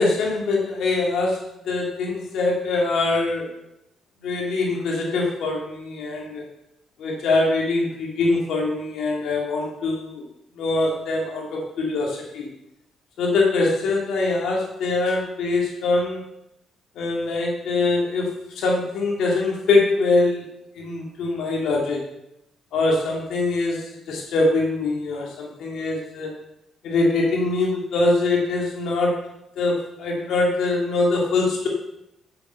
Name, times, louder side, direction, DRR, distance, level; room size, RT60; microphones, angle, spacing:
voice 1, 0.0-3.5 4.2-6.4 7.0-10.2 10.6-12.5 13.2-16.2 17.0-20.4 20.8-22.0 22.7-26.3 26.8-29.2 29.6-31.7, left 3 dB, 75° left, -1 dB, 2.2 m, -23 dB
8.8 x 6.9 x 5.6 m, 0.83 s
cardioid pair, 90°, 0 cm